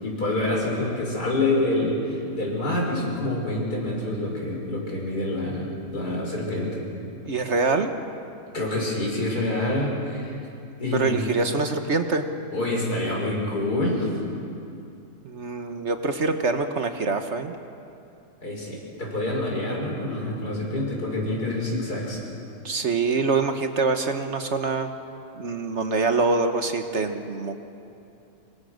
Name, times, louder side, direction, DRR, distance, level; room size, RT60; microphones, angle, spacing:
voice 1, 0.0-6.9 8.5-10.4 10.8-11.2 12.5-14.1 18.4-22.2, left 2 dB, 80° left, -2 dB, 6.3 m, -27 dB
voice 2, 7.3-7.9 10.9-12.3 15.2-17.6 22.6-24.9 25.4-27.7, right 4 dB, 50° right, 7 dB, 1.4 m, -25 dB
26.0 x 24.0 x 6.5 m, 2.6 s
omnidirectional pair, 1.6 m